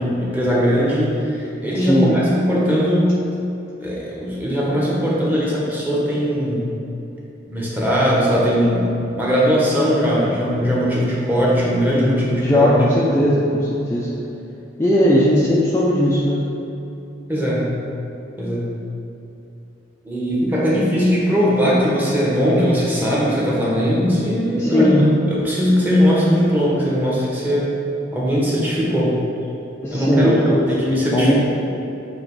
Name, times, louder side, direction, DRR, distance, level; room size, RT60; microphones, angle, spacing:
voice 1, 0.0-3.2 3.8-6.7 7.5-8.9 9.2-12.7 17.3-17.8 18.4-18.7 20.0-24.9 25.3-27.7 28.1-29.2 29.9-31.3, equal, 10° right, -6 dB, 1.2 m, -19 dB
voice 2, 1.8-2.2 12.4-14.1 14.8-16.4 24.6-25.1 29.8-30.6 31.1-31.3, left 1 dB, 15° left, -6 dB, 0.5 m, -17 dB
7.6 x 3.1 x 4.7 m, 2.9 s
head